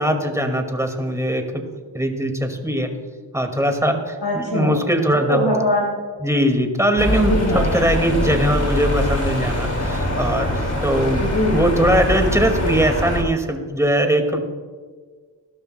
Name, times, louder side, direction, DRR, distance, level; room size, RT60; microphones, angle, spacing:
voice 1, 0.0-1.6 1.9-2.9 3.3-5.4 6.2-14.4, right 1 dB, 5° right, 4 dB, 1.9 m, -21 dB
voice 2, 4.2-4.8 5.3-6.0 7.0-7.8 8.1-8.3 11.2-11.6, left 1 dB, 80° left, -3 dB, 3.5 m, -22 dB
sound 1, 7.0-13.2, left 1 dB, 40° left, 2.8 m, -23 dB
20.5 x 12.0 x 2.2 m, 1.5 s
cardioid pair, 50°, 45 cm